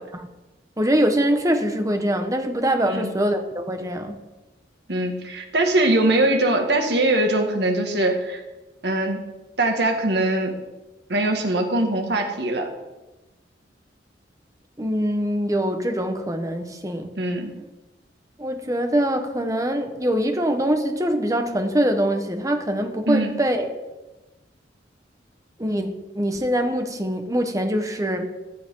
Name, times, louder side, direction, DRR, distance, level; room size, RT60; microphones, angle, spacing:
voice 1, 0.8-4.2 14.8-17.1 18.4-23.7 25.6-28.3, equal, 20° right, 6 dB, 1.3 m, -23 dB
voice 2, 4.9-8.4 8.8-9.2 9.6-10.6 11.1-12.7 17.2-17.5 23.0-23.4, right 1 dB, 65° right, 3 dB, 2.2 m, -22 dB
15.0 x 12.5 x 3.9 m, 1.1 s
head